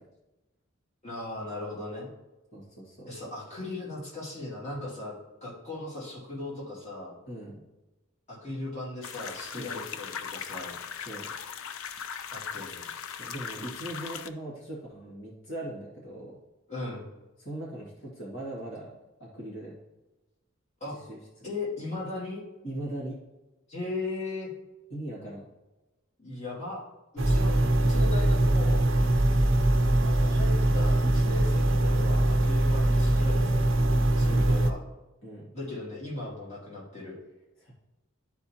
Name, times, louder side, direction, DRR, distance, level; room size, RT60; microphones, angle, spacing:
voice 1, 1.0-2.1 3.0-5.1 5.4-7.2 8.3-10.8 12.3-13.0 16.7-17.1 20.8-21.0 21.4-22.4 23.7-24.5 26.2-26.8 27.1-28.9 30.0-33.7 34.2-34.8 35.5-37.2, left 2 dB, 35° left, -6 dB, 2.3 m, -37 dB
voice 2, 2.5-3.1 7.3-7.6 9.4-9.8 11.1-11.3 13.1-16.4 17.4-18.9 19.2-19.8 20.9-21.5 22.6-23.2 24.9-25.4 29.4-29.7 34.2-34.5 35.2-35.5 37.6-37.7, right 1 dB, 60° left, -5 dB, 2.0 m, -40 dB
sound 1, 9.0-14.3, left 7 dB, 80° left, 0.5 m, -39 dB
sound 2, 27.2-34.7, right 1 dB, 65° right, 0.7 m, -22 dB
12.0 x 4.7 x 2.8 m, 1.1 s
head